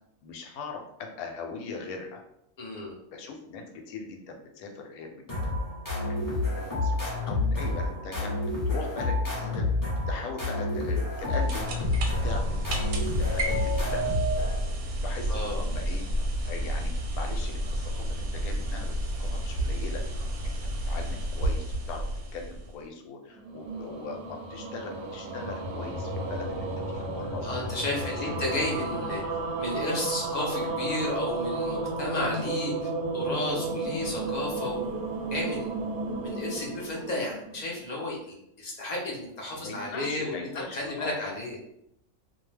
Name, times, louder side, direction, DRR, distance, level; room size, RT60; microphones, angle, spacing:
voice 1, 0.2-2.2 3.1-5.5 6.0-8.3 8.7-9.8 10.1-11.7 12.2-12.7 13.2-14.1 15.0-16.0 16.5-20.0 20.4-22.1 22.3-28.6 39.5-41.3, left 4 dB, 85° left, 3 dB, 1.0 m, -40 dB
voice 2, 2.6-2.9 15.3-15.6 27.4-29.2 29.6-32.7 33.1-35.0 35.3-35.7 36.2-38.2 38.6-41.6, left 1 dB, 60° left, -3 dB, 0.4 m, -32 dB
sound 1, 5.3-14.8, left 2 dB, 15° left, 0.8 m, -29 dB
sound 2, 11.0-22.8, right 1 dB, 70° right, 0.8 m, -31 dB
sound 3, 23.4-37.8, right 2 dB, 90° right, 1.1 m, -33 dB
2.6 x 2.1 x 3.2 m, 0.77 s
omnidirectional pair, 1.5 m